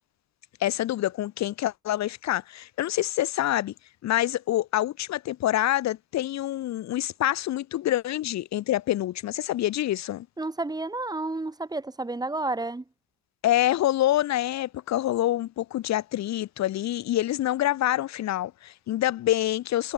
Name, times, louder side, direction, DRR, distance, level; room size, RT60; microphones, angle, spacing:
voice 1, 0.6-3.7 4.0-10.3 13.4-19.9, left 13 dB, 65° left, 0.7 m, -26 dB
voice 2, 10.4-12.8, right 2 dB, 15° right, 1.2 m, -31 dB
cardioid pair, 90°, 30 cm